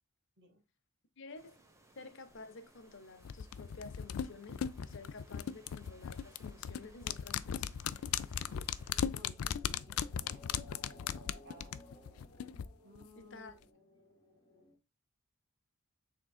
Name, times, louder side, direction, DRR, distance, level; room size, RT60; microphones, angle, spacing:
voice 1, 1.2-1.6 2.0-7.8 13.2-13.6, left 3 dB, 60° left, 0.8 m, -51 dB
sound 1, 1.3-9.1, right 1 dB, 15° right, 1.0 m, -64 dB
sound 2, 3.2-12.7 13.0-13.1, left 8 dB, 75° left, 0.4 m, -37 dB
sound 3, 6.4-14.7, left 2 dB, 15° left, 1.8 m, -60 dB
voice 2, 9.1-10.4 11.0-11.7 12.8-13.5, right 1 dB, 55° right, 1.7 m, -59 dB
6.0 x 3.7 x 2.3 m
head